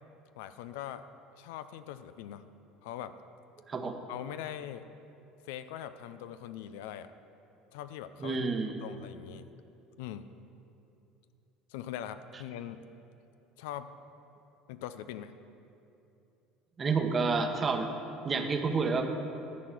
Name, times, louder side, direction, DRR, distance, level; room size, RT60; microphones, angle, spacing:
voice 1, 0.4-1.0 1.4-2.5 2.8-3.2 4.1-4.9 5.4-7.1 7.7-8.4 8.8-9.5 10.0-10.3 11.7-12.8 13.6-13.9 14.7-15.3 18.3-18.5, left 11 dB, 80° left, 11 dB, 0.4 m, -41 dB
voice 2, 3.7-4.0 8.2-8.8 16.8-17.9 18.2-19.1, right 4 dB, 30° right, 6 dB, 1.0 m, -29 dB
11.0 x 4.7 x 8.3 m, 2.8 s
supercardioid pair, 90°, 0 cm